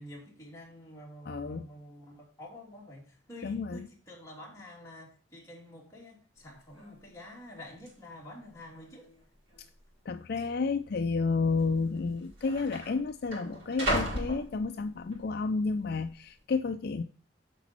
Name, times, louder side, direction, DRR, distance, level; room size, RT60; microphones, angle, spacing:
voice 1, 0.0-9.1, left 1 dB, 15° left, 2.8 m, -48 dB
voice 2, 1.3-1.7 3.4-3.9 10.1-17.0, left 4 dB, 55° left, 0.4 m, -31 dB
sound 1, 6.4-6.5 6.7-7.1 7.9-8.0 8.7-9.2 9.5-9.6 10.5-10.6 11.6-11.7 12.0-15.2 15.7-16.1, equal, 85° right, 5.2 m, -36 dB
8.3 x 6.1 x 4.3 m
head